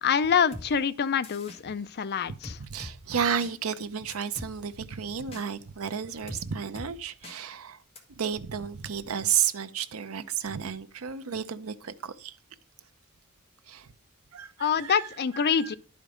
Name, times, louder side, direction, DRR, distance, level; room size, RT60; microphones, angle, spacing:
voice 1, 0.0-2.6 14.6-15.8, left 7 dB, 50° left, 0.5 m, -26 dB
sound 1, 0.5-0.7 1.2-1.6 2.4-2.9 3.4-3.5 4.1-4.5 5.3-5.4 6.3-6.4 6.8-6.9 7.2-7.4 8.0-8.1, left 1 dB, 30° left, 1.6 m, -41 dB
voice 2, 2.6-7.8 8.2-12.4 13.7-13.9 14.3-15.1 15.3-15.8, right 8 dB, 70° right, 0.6 m, -32 dB
11.0 x 5.1 x 5.0 m
head